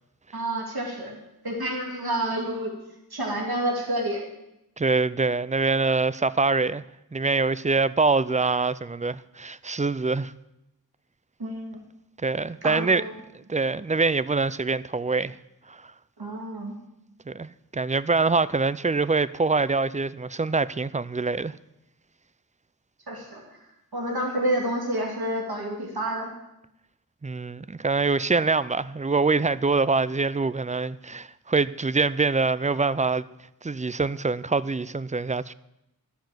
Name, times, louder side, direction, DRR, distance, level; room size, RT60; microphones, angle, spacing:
voice 1, 0.3-1.2 1.4-2.7 3.1-4.2 11.4-11.8 12.6-13.1 16.2-16.8 23.1-23.6 23.9-26.3, right 1 dB, 75° right, 2.5 m, -29 dB
voice 2, 4.8-6.9 7.1-10.3 12.2-13.0 13.3-15.4 15.7-15.9 17.3-21.5 27.2-33.2 33.6-35.5, right 4 dB, 20° right, 0.4 m, -24 dB
13.0 x 7.1 x 7.7 m
wide cardioid pair, 40°, 37 cm